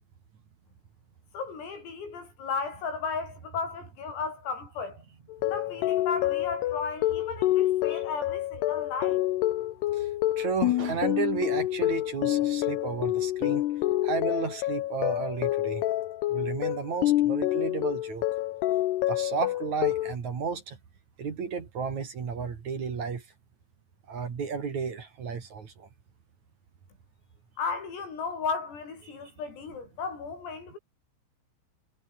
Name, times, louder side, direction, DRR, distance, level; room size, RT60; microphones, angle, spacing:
voice 1, 1.3-5.0 5.4-9.2 27.6-30.8, left 5 dB, 85° left, 11.0 m, -35 dB
sound 1, 5.3-20.1, left 15 dB, 70° left, 2.7 m, -27 dB
voice 2, 10.4-13.6 14.0-15.8 16.3-18.2 19.1-20.8 21.2-23.2 24.1-25.9 29.1-29.2, right 5 dB, 40° right, 3.5 m, -33 dB
omnidirectional pair, 5.9 m